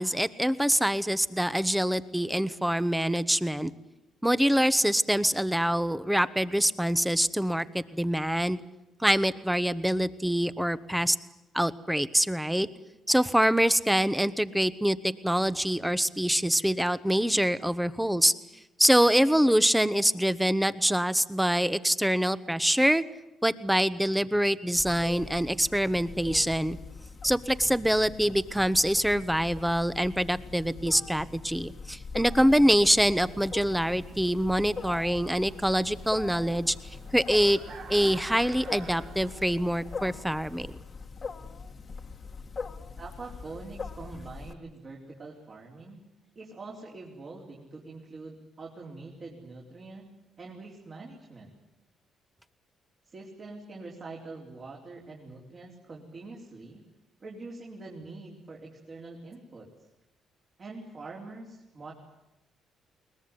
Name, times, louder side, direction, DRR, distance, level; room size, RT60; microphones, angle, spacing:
voice 1, 0.0-3.7 4.2-8.6 9.0-11.2 11.5-12.7 13.1-18.3 18.8-23.0 23.4-26.8 27.2-36.7 37.1-37.6 37.9-40.7, equal, 5° right, 15 dB, 1.1 m, -25 dB
Wild animals, 24.8-44.5, left 4 dB, 40° left, 1.6 m, -42 dB
sound 1, 33.2-40.7, right 5 dB, 70° right, 2.6 m, -49 dB
voice 2, 43.0-46.0 46.4-50.1 50.4-51.5 53.0-56.8 57.2-59.7 60.6-61.9, right 3 dB, 40° right, -2 dB, 4.2 m, -44 dB
22.0 x 20.0 x 9.8 m, 0.95 s
cardioid pair, 90°, 0 cm